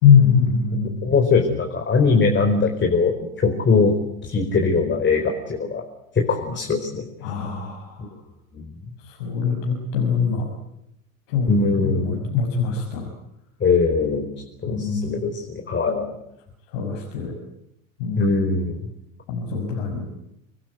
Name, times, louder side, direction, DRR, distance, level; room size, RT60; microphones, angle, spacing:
voice 1, 0.0-1.1 7.2-7.9 9.1-10.5 11.3-13.1 14.7-15.2 16.7-17.4 18.0-18.3 19.3-20.1, left 6 dB, 65° left, 2 dB, 6.1 m, -22 dB
voice 2, 0.7-3.9 4.2-5.2 5.5-5.8 6.1-7.0 8.5-8.6 11.5-12.2 13.6-14.3 14.6-16.1 18.2-18.7, left 4 dB, 25° left, 3 dB, 4.9 m, -21 dB
26.0 x 20.0 x 9.5 m, 0.82 s
hypercardioid pair, 85°, 41 cm